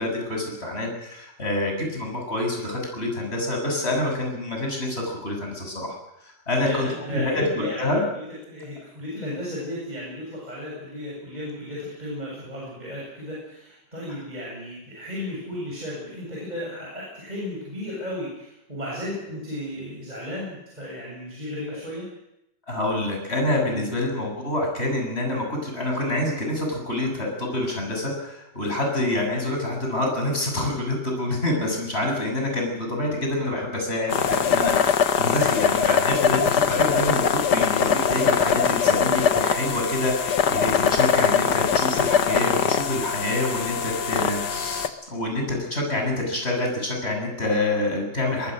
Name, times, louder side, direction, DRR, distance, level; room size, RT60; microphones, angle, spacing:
voice 1, 0.0-6.0 6.2-8.0 22.7-48.5, left 1 dB, 35° left, 1 dB, 7.5 m, -27 dB
voice 2, 6.5-22.1 23.7-23.9 29.0-29.1, left 1 dB, 25° right, -5 dB, 7.6 m, -34 dB
sound 1, 34.1-44.9, left 7 dB, 75° left, 1.8 m, -22 dB
23.0 x 22.5 x 6.4 m, 0.84 s
omnidirectional pair, 1.8 m